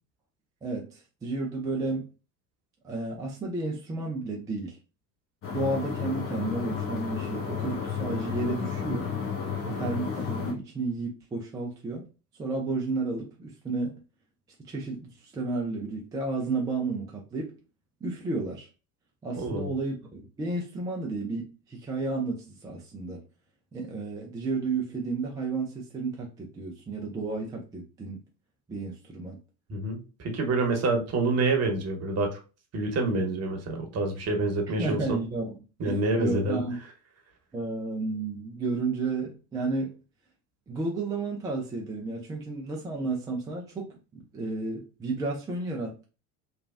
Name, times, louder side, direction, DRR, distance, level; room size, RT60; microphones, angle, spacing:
voice 1, 0.6-2.1 2.8-4.8 5.5-9.1 9.7-12.0 12.4-14.0 14.6-17.6 18.0-18.7 19.2-23.2 23.7-28.2 28.7-29.4 34.8-35.6 35.8-36.8 37.5-39.9 40.7-46.0, right 3 dB, 10° right, -1 dB, 0.3 m, -32 dB
sound 1, 5.4-10.5, left 6 dB, 30° left, 0.9 m, -32 dB
voice 2, 19.4-19.7 29.7-32.4 32.7-35.2 35.8-36.6, right 2 dB, 35° right, 3 dB, 1.0 m, -27 dB
3.1 x 2.3 x 2.4 m, 0.33 s
figure-of-eight pair, 65°, 45 cm